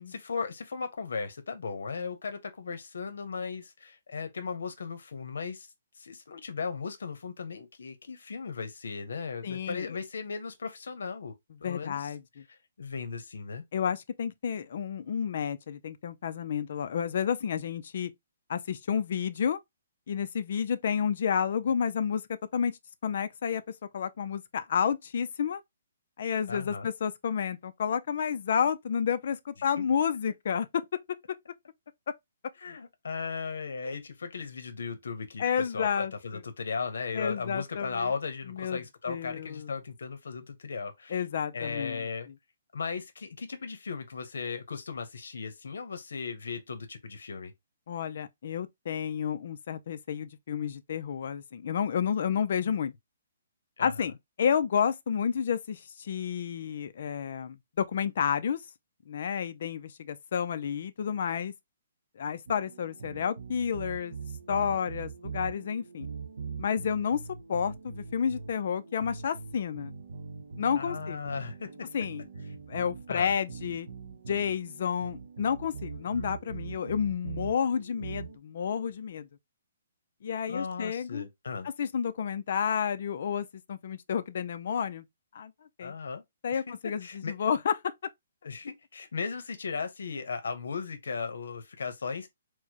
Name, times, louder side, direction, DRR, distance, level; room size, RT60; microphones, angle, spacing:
voice 1, 0.0-5.7 6.0-11.3 11.6-12.1 12.5-13.6 26.5-26.9 29.8-29.9 32.6-41.2 41.5-42.3 42.7-47.5 52.6-52.7 53.8-54.1 70.8-71.9 73.1-73.3 76.1-76.3 80.5-81.7 85.8-86.2 86.5-86.7 87.0-87.3 88.4-92.3, left 5 dB, 70° left, 0.8 m, -37 dB
voice 2, 9.4-10.0 11.6-12.4 13.7-18.1 18.5-19.6 20.1-22.2 22.5-23.6 23.9-25.6 26.2-30.8 35.4-36.4 37.1-38.1 38.5-38.8 39.1-39.7 41.1-42.1 47.9-52.9 53.8-54.1 54.4-58.6 59.1-61.5 62.2-64.2 64.5-66.1 66.6-67.2 67.5-69.9 70.6-71.2 71.9-72.3 72.7-73.9 74.3-79.3 80.2-81.3 81.8-85.0 85.3-85.5 85.8-85.9 86.4-87.9, left 7 dB, 40° left, 0.4 m, -30 dB
sound 1, 62.5-78.4, right 5 dB, 65° right, 0.7 m, -42 dB
4.5 x 2.0 x 2.8 m
hypercardioid pair, 180°, 0 cm